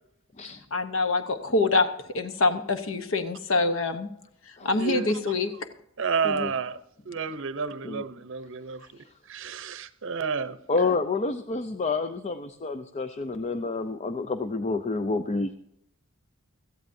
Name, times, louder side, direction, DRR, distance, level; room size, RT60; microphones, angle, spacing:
voice 1, 0.7-1.9 2.1-4.1 4.6-5.5, left 3 dB, 70° left, 1.0 m, -25 dB
voice 2, 4.6-5.2 6.0-6.8 7.1-8.9 9.3-10.6, right 5 dB, 65° right, 0.7 m, -30 dB
voice 3, 10.7-15.6, left 3 dB, 35° left, 0.5 m, -29 dB
17.0 x 14.0 x 2.7 m
head